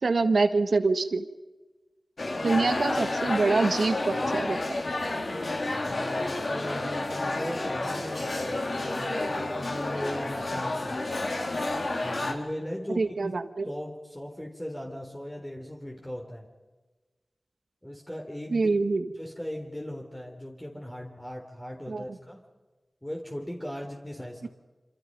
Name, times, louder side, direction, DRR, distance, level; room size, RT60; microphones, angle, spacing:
voice 1, 0.0-1.2 2.4-4.8 13.0-13.6 18.5-19.0 21.9-22.0 24.4-24.5, right 3 dB, 80° right, 9 dB, 1.7 m, -25 dB
sound 1, 2.2-12.3, left 2 dB, 65° left, 4.2 m, -30 dB
voice 2, 5.7-11.1 12.0-13.4 13.6-16.5 17.8-18.7 19.1-22.4 23.0-24.5, equal, 10° left, -1 dB, 3.8 m, -38 dB
27.5 x 27.0 x 5.4 m, 1.2 s
wide cardioid pair, 60°, 0 cm